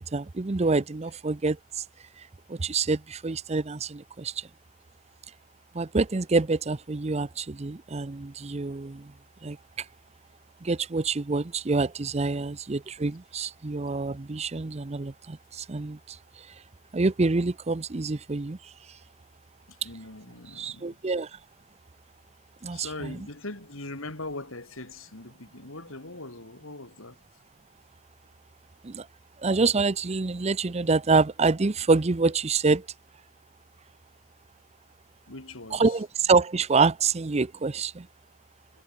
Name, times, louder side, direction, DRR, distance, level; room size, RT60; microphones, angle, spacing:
voice 1, 0.0-1.8 2.2-4.5 5.7-9.1 9.4-9.9 10.6-16.5 16.9-18.7 20.6-21.4 22.6-23.1 28.8-29.1 29.4-32.9 35.7-38.1, right 4 dB, 30° right, 0.6 m, -26 dB
voice 2, 19.7-21.0 22.7-27.2 35.3-36.0, left 2 dB, 80° left, 4.1 m, -41 dB
head